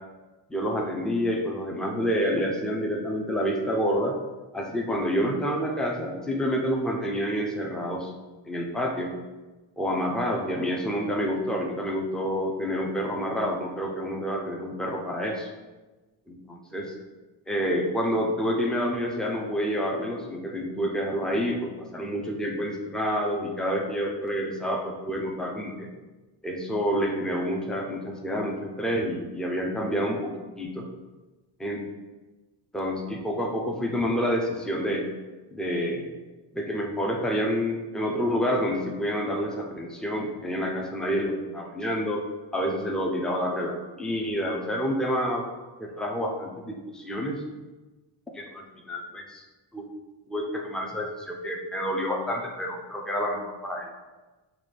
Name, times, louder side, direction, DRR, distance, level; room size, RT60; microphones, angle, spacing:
voice 1, 0.5-4.2 4.5-8.1 8.5-9.1 9.8-15.5 16.3-16.9 17.5-25.9 26.4-30.8 31.6-31.8 32.7-35.0 35.5-36.1 36.5-42.2 42.5-45.4 45.8-47.4 48.3-49.4 49.7-49.8 50.3-53.9, equal, ahead, 0 dB, 0.7 m, -28 dB
6.0 x 3.2 x 5.2 m, 1.2 s
wide cardioid pair, 140°, 46 cm